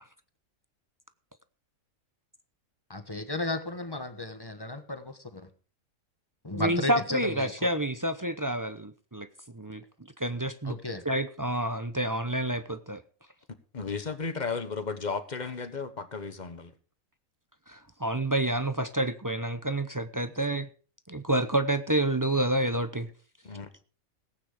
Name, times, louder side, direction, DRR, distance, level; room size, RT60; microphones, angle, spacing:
voice 1, 2.9-5.5 6.4-7.7 10.6-11.0, left 2 dB, 20° left, 8 dB, 1.2 m, -34 dB
voice 2, 6.5-9.3 9.5-9.8 10.2-10.8 11.1-13.0 17.7-20.7 21.1-23.1, right 1 dB, 20° right, 10 dB, 0.5 m, -28 dB
voice 3, 13.7-16.7 23.4-23.7, left 4 dB, 35° left, 10 dB, 1.2 m, -34 dB
17.5 x 9.1 x 5.0 m, 0.40 s
omnidirectional pair, 1.5 m